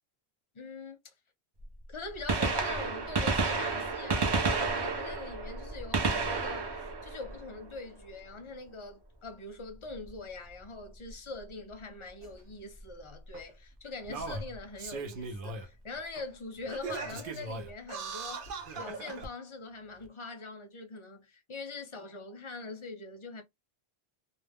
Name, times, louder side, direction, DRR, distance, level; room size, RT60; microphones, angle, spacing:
voice 1, 0.5-1.1 1.9-18.5 18.8-23.4, left 3 dB, 40° left, 0.5 m, -43 dB
Gunshot gunfire, 1.6-1.7 2.1-8.0 9.9-10.1 11.1-11.2 12.8-12.9 14.3-14.4 14.5-14.6, right 4 dB, 35° right, 0.4 m, -31 dB
Singing, 12.2-12.3 13.3-13.4 14.0-15.7 16.2-16.3 16.7-19.3 20.0-20.1, right 3 dB, 65° right, 0.7 m, -39 dB
2.2 x 2.0 x 3.4 m
omnidirectional pair, 1.0 m